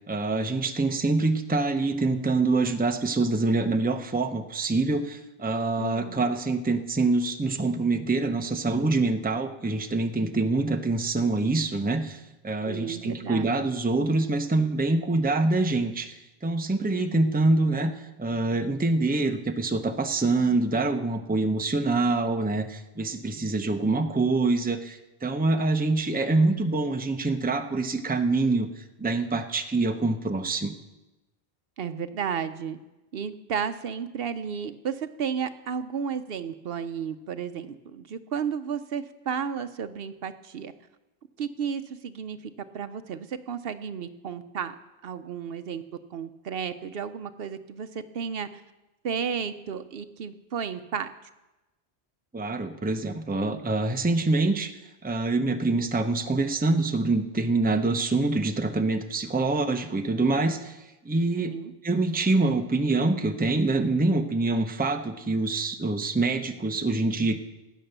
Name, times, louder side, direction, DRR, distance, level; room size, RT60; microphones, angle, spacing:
voice 1, 0.1-17.9 18.2-28.7 29.0-30.7 52.3-54.7 55.0-60.8 61.0-61.5 61.8-67.4, right 3 dB, 10° right, 6 dB, 0.7 m, -25 dB
voice 2, 5.8-6.3 12.6-13.5 16.9-17.2 31.8-32.8 33.1-40.7 41.4-42.4 42.7-44.7 45.0-45.8 46.1-48.5 49.0-51.1 61.3-61.7, right 7 dB, 65° right, 11 dB, 0.8 m, -33 dB
16.0 x 9.3 x 6.7 m, 1.0 s
omnidirectional pair, 1.1 m